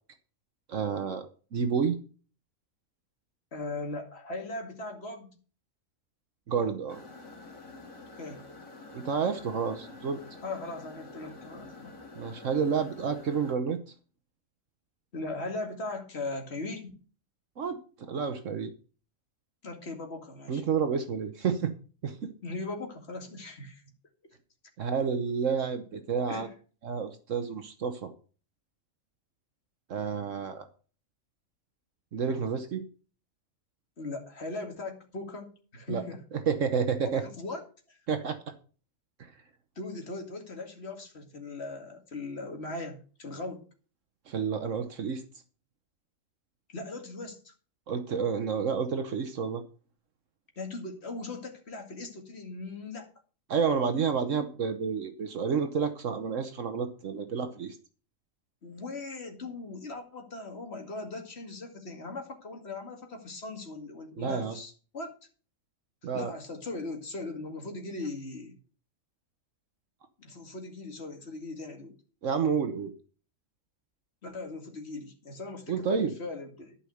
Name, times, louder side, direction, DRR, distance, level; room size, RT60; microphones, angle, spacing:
voice 1, 0.7-1.2 1.5-2.0 6.5-7.0 8.9-10.2 12.1-13.8 17.6-18.7 20.5-21.7 22.0-22.3 24.8-26.5 26.8-28.1 29.9-30.7 32.1-32.8 35.9-36.0 36.5-37.2 38.1-38.4 39.2-39.3 44.3-45.2 47.9-49.6 53.5-57.8 64.2-64.6 66.0-66.3 72.2-72.9 75.7-76.1, right 6 dB, 65° right, 9 dB, 1.3 m, -30 dB
voice 2, 3.5-5.3 8.2-8.4 10.4-12.0 15.1-16.9 19.6-20.6 22.4-23.8 26.3-26.5 34.0-36.2 37.1-37.6 37.9-38.0 39.8-43.6 46.7-47.5 50.6-53.1 58.6-65.2 66.1-68.6 70.2-71.9 74.2-76.8, left 2 dB, 50° left, 3 dB, 2.4 m, -39 dB
sound 1, 6.9-13.6, left 3 dB, 75° left, 2.8 m, -48 dB
11.5 x 5.8 x 6.4 m, 0.39 s
omnidirectional pair, 1.4 m